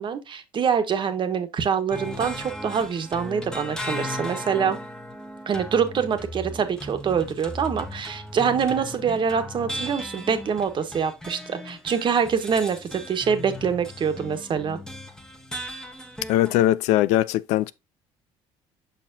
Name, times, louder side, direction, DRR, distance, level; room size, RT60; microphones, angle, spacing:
voice 1, 0.0-4.8 5.5-14.8, right 7 dB, 45° right, 1.3 m, -25 dB
sound 1, 1.9-16.7, left 1 dB, 5° left, 1.2 m, -37 dB
voice 2, 16.3-17.7, left 14 dB, 85° left, 0.5 m, -20 dB
6.8 x 5.9 x 2.7 m
cardioid pair, 95°, 11 cm